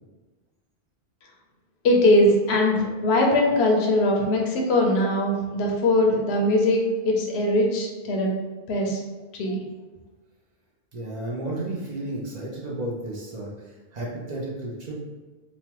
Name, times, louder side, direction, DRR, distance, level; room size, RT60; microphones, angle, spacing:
voice 1, 1.8-8.3 8.7-9.0 9.3-9.6, left 1 dB, 85° left, 0 dB, 0.9 m, -21 dB
voice 2, 10.9-15.0, right 1 dB, 50° right, -4 dB, 0.6 m, -33 dB
3.0 x 2.1 x 2.9 m, 1.2 s
omnidirectional pair, 1.1 m